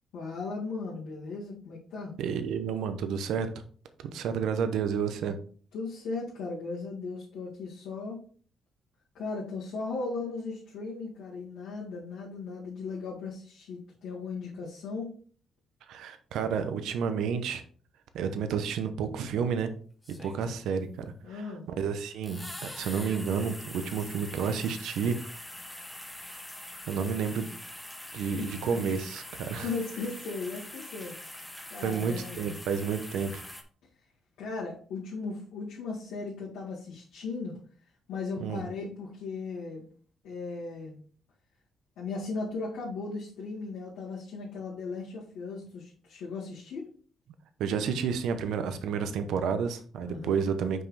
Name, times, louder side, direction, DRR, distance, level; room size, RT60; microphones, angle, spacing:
voice 1, 0.1-2.1 5.7-8.2 9.1-15.2 21.2-21.7 28.4-28.8 29.6-31.2 31.7-32.6 34.4-37.6 38.1-39.9 40.2-41.0 42.0-46.9 50.0-50.5, left 4 dB, 85° left, -6 dB, 2.1 m, -37 dB
voice 2, 2.2-3.5 4.0-5.3 15.9-17.6 18.1-19.7 20.1-21.4 21.8-25.2 26.9-27.5 28.1-29.7 31.8-33.4 38.4-38.6 47.6-50.8, right 6 dB, 80° right, 9 dB, 0.8 m, -30 dB
sound 1, 19.1-19.2 20.0-20.8 22.2-33.6, left 1 dB, 10° left, 1.0 m, -44 dB
5.9 x 5.2 x 3.3 m, 0.44 s
cardioid pair, 90°, 0 cm